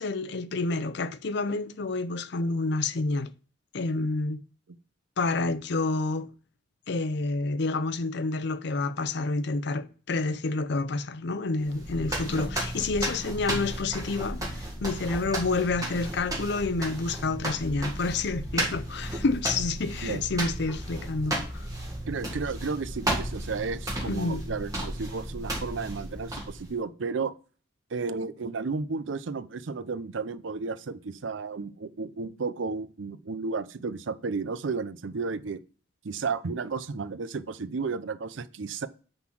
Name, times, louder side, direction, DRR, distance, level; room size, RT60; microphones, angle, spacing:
voice 1, 0.0-3.3 3.7-4.4 5.2-6.3 6.9-21.7 24.1-24.4, left 3 dB, 55° left, 0.5 m, -29 dB
sound 1, 11.6-26.8, right 1 dB, 20° right, 1.7 m, -34 dB
voice 2, 22.1-27.3 27.9-35.6 36.0-38.9, right 4 dB, 65° right, 0.5 m, -33 dB
9.6 x 3.9 x 5.9 m
head